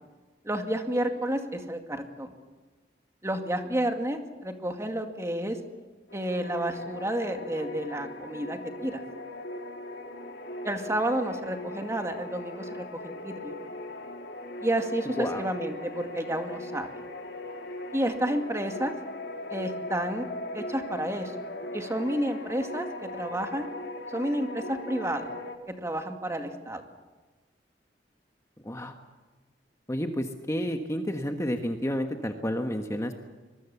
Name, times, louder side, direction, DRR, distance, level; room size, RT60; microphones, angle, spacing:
voice 1, 0.4-2.3 3.2-5.6 6.1-9.0 10.6-13.5 14.6-16.9 17.9-18.9 19.5-20.3 20.5-21.3 21.7-23.7 24.1-25.3 25.8-26.8, right 1 dB, 15° right, 5 dB, 2.2 m, -30 dB
sound 1, 6.1-25.6, left 1 dB, 80° left, 3.0 m, -39 dB
voice 2, 29.9-33.2, equal, 15° left, 5 dB, 1.3 m, -30 dB
25.0 x 22.0 x 7.1 m, 1.3 s
head